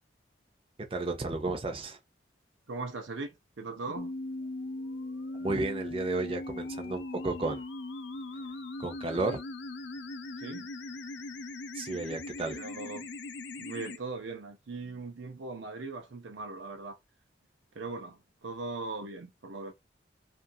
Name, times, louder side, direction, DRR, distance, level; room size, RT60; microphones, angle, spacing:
voice 1, 0.9-2.0 5.4-7.6 8.8-9.4 11.7-12.6, right 3 dB, 30° right, 0.5 m, -32 dB
voice 2, 2.7-4.1 10.4-10.7 12.5-13.1 13.6-17.0 17.7-19.7, right 3 dB, 80° right, 0.6 m, -39 dB
sound 1, 4.0-14.0, left 2 dB, 70° left, 0.5 m, -39 dB
2.8 x 2.5 x 2.6 m
head